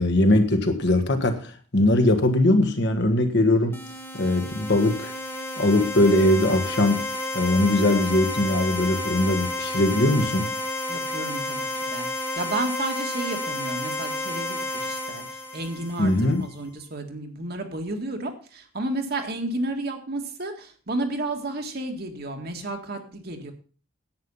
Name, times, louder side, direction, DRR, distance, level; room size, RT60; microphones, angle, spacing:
voice 1, 0.0-3.8 4.1-5.1 5.6-7.0 7.3-10.5 16.0-16.5, left 1 dB, 55° left, 1.7 m, -21 dB
sound 1, 3.7-16.4, left 2 dB, 10° left, 1.1 m, -31 dB
voice 2, 10.9-23.5, right 2 dB, 50° right, 1.9 m, -32 dB
10.5 x 9.0 x 5.5 m
head